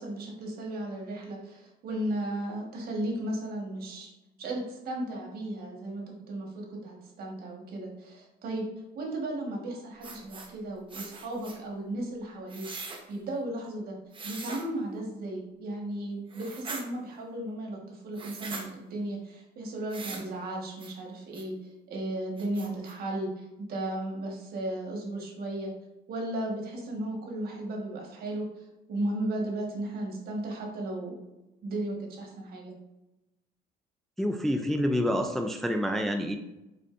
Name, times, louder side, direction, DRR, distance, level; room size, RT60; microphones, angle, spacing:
voice 1, 0.0-4.1 4.4-8.7 8.9-14.0 14.2-25.7 26.1-31.2 31.6-32.7, right 1 dB, 65° right, 0 dB, 1.4 m, -35 dB
sound 1, 10.0-10.5 10.9-11.6 12.5-13.0 14.1-14.6 16.3-16.8 18.1-18.7 19.9-20.3 20.8-20.9 21.3-21.4 21.9-22.0 22.4-22.9, right 3 dB, 30° right, 0.9 m, -41 dB
voice 2, 34.2-36.4, equal, ahead, 5 dB, 0.3 m, -27 dB
5.2 x 4.1 x 2.5 m, 0.96 s
cardioid pair, 110°, 17 cm